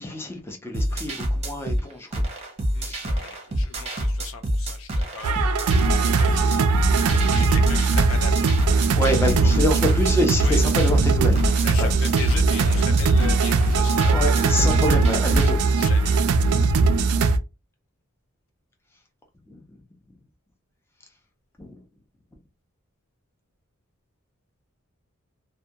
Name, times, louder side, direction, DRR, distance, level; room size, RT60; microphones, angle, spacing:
voice 1, 0.0-2.3 2.8-3.1 7.0-7.5 8.9-11.4 11.8-11.9 13.8-15.6 19.5-19.6 21.6-21.8, left 1 dB, 10° left, 0.6 m, -27 dB
sound 1, 0.7-15.5, equal, 30° right, 0.7 m, -27 dB
voice 2, 2.7-8.6 9.4-9.5 10.4-10.6 11.6-14.2 15.8-16.2, left 6 dB, 60° left, 0.4 m, -38 dB
sound 2, 5.2-17.4, right 3 dB, 90° right, 0.4 m, -20 dB
2.3 x 2.2 x 2.7 m
head